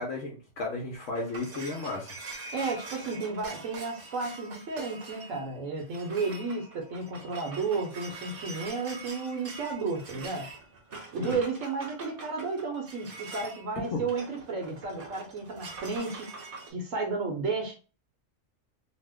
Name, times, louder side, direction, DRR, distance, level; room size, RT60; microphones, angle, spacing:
voice 1, 0.0-2.1 11.2-11.4 13.9-14.0, left 3 dB, 75° left, 0 dB, 1.0 m, -34 dB
sound 1, 0.7-16.7, right 3 dB, 50° right, 0.8 m, -44 dB
voice 2, 2.5-10.5 11.1-16.3 16.7-17.8, right 4 dB, 80° right, 2 dB, 1.2 m, -33 dB
2.9 x 2.1 x 3.4 m, 0.35 s
omnidirectional pair, 1.3 m